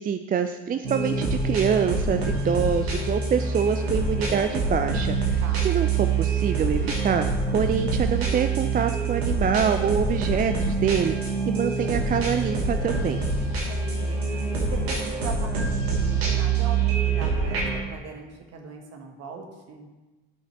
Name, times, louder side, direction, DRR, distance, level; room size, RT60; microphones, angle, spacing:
voice 1, 0.0-7.3 7.5-13.2, right 7 dB, 30° right, 8 dB, 0.5 m, -25 dB
sound 1, 0.8-17.8, right 4 dB, 80° right, 1.4 m, -25 dB
voice 2, 13.5-14.2 14.6-19.9, right 5 dB, 55° right, 3 dB, 1.5 m, -40 dB
9.9 x 5.7 x 4.3 m, 1.2 s
figure-of-eight pair, 50°, 31 cm